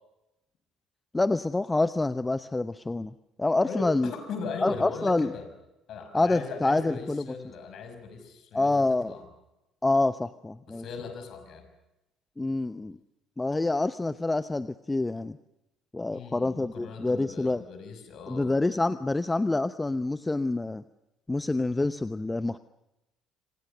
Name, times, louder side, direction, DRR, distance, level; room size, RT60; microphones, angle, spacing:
voice 1, 1.1-3.1 3.4-4.1 4.6-5.3 6.1-7.2 8.5-9.2 9.8-10.8 12.4-13.0 13.4-15.4 15.9-17.6 18.3-20.8 21.3-22.6, left 2 dB, 15° left, 13 dB, 0.9 m, -27 dB
voice 2, 3.6-5.5 5.9-9.3 10.7-11.7 16.1-18.6, left 4 dB, 55° left, 7 dB, 5.7 m, -39 dB
26.5 x 26.5 x 6.7 m, 0.94 s
figure-of-eight pair, 50°, 0 cm